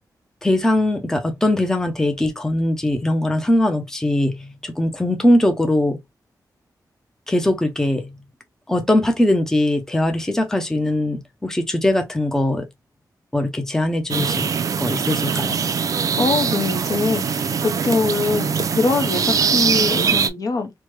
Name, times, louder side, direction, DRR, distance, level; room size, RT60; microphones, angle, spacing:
voice 1, 0.4-6.0 7.3-8.1 8.7-12.7 13.3-14.5 14.8-15.6, left 1 dB, 5° left, 0.5 m, -20 dB
sound 1, 14.1-20.3, right 6 dB, 55° right, 0.3 m, -22 dB
voice 2, 16.2-20.7, left 4 dB, 60° left, 0.7 m, -23 dB
3.1 x 2.1 x 3.1 m
wide cardioid pair, 135°, 7 cm